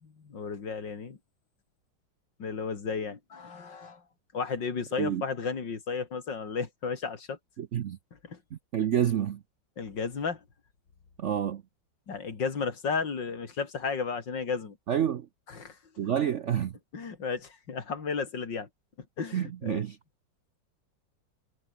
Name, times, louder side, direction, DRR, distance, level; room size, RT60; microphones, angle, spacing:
voice 1, 0.0-1.2 2.4-4.0 4.3-7.4 8.2-8.4 9.8-10.4 12.1-14.8 15.5-15.8 16.9-18.7 19.2-19.8, left 5 dB, 70° left, 3.4 m, -33 dB
voice 2, 7.6-8.0 8.5-9.4 11.2-11.6 14.9-15.3 16.0-16.8 19.3-20.0, right 9 dB, 60° right, 0.7 m, -28 dB
omnidirectional pair, 2.0 m